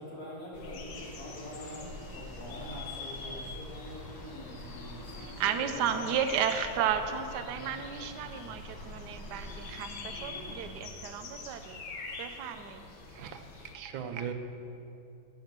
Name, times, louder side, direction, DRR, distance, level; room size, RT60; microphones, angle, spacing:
voice 1, 0.0-6.2, left 1 dB, 50° left, -6 dB, 3.5 m, -44 dB
sound 1, 0.5-13.7, left 3 dB, 85° left, 1.9 m, -45 dB
sound 2, 0.9-10.8, equal, 15° left, 0.8 m, -49 dB
voice 2, 5.4-11.8 12.2-12.8, right 8 dB, 65° right, 8 dB, 1.2 m, -33 dB
voice 3, 13.1-14.3, right 8 dB, 85° right, 7 dB, 1.6 m, -39 dB
10.5 x 7.1 x 8.0 m, 2.8 s
omnidirectional pair, 2.1 m